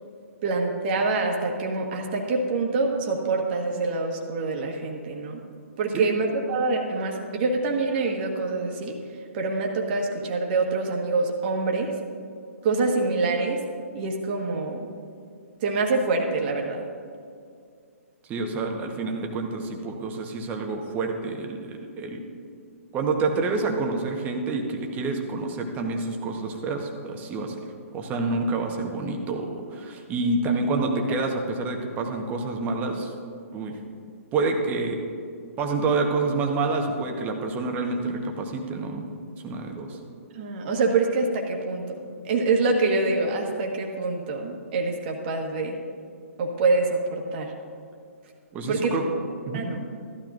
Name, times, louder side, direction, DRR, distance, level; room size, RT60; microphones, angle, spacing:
voice 1, 0.4-5.4 5.8-8.9 9.3-11.9 12.6-13.6 13.9-14.9 15.6-16.8 40.3-41.8 42.2-45.7 46.4-47.5 48.7-48.9 49.5-49.9, right 3 dB, 40° right, 1 dB, 1.5 m, -25 dB
voice 2, 18.3-22.2 22.9-27.6 27.9-33.1 33.5-33.7 34.3-35.0 35.6-39.1 39.4-40.0 48.5-49.0 49.5-49.7, right 3 dB, 20° right, 3 dB, 1.1 m, -28 dB
14.5 x 11.5 x 2.6 m, 2.3 s
figure-of-eight pair, 130°, 8 cm